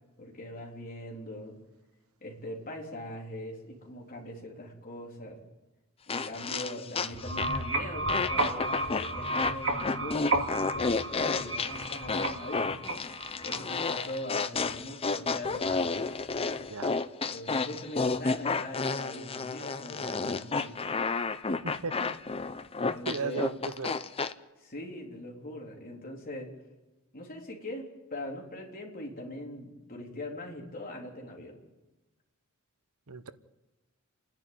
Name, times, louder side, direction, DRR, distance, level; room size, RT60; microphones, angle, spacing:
voice 1, 0.2-1.6 2.2-5.4 6.1-12.8 13.4-16.0 17.3-20.8 22.9-23.5 24.6-26.5 27.1-31.6, left 1 dB, 45° left, 0 dB, 3.8 m, -41 dB
sound 1, 6.1-7.7 8.1-24.3, left 4 dB, 25° left, 0.7 m, -31 dB
sound 2, 7.1-13.9, right 2 dB, 65° right, 2.6 m, -32 dB
voice 2, 21.6-22.2 23.1-24.0 33.1-33.3, right 4 dB, 85° right, 12 dB, 1.0 m, -35 dB
29.5 x 10.5 x 9.1 m, 1.1 s
head